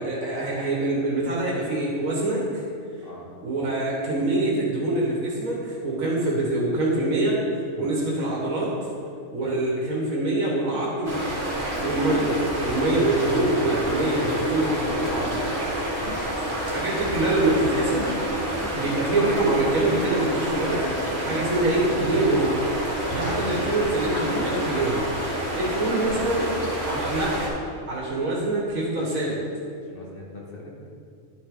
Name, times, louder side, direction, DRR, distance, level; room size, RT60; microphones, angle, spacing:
voice 1, 0.0-2.6 3.4-8.7 9.3-11.3 11.8-15.5 16.6-18.1 18.7-22.6 23.1-26.4 26.9-27.4 27.9-29.4, right 2 dB, 80° right, -4 dB, 2.0 m, -25 dB
sound 1, 11.0-27.5, right 1 dB, 55° right, 2.6 m, -29 dB
voice 2, 15.9-16.2 23.2-23.5 25.6-26.0 29.8-30.7, left 1 dB, 45° left, -3 dB, 1.8 m, -43 dB
11.0 x 6.5 x 3.8 m, 2.4 s
omnidirectional pair, 1.4 m